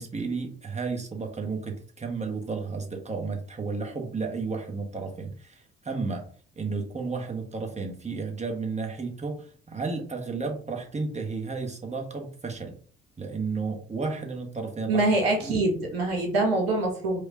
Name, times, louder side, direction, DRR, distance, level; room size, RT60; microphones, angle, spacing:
voice 1, 0.0-6.3 6.6-12.7 13.2-15.1 15.4-15.6, right 4 dB, 20° right, 2 dB, 1.1 m, -32 dB
voice 2, 14.9-17.2, right 2 dB, 80° right, 2 dB, 0.9 m, -24 dB
4.8 x 2.2 x 2.8 m, 0.44 s
figure-of-eight pair, 45°, 30 cm